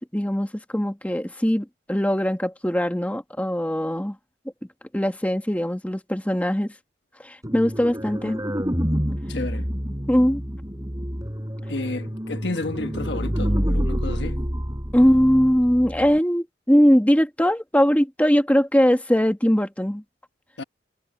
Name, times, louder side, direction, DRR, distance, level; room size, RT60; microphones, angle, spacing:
voice 1, 0.1-4.2 4.9-6.7 7.2-8.4 10.1-10.4 14.9-20.0, equal, 10° left, 1.6 m, -21 dB
sound 1, 7.4-16.2, equal, 20° right, 4.8 m, -28 dB
voice 2, 9.3-9.7 11.7-14.4 20.6-20.7, left 2 dB, 70° left, 1.5 m, -31 dB
head